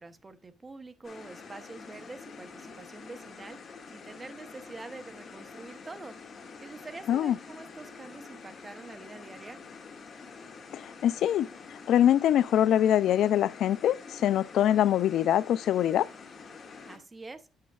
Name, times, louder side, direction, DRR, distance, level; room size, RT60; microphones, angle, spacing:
voice 1, 0.0-6.1 6.6-9.6 16.9-17.5, right 3 dB, 20° right, 0.8 m, -46 dB
sound 1, 1.0-17.0, left 5 dB, 35° left, 1.9 m, -47 dB
voice 2, 10.7-11.5 11.9-16.1, left 11 dB, 70° left, 0.3 m, -24 dB
8.5 x 7.7 x 2.3 m
cardioid pair, 130°, 0 cm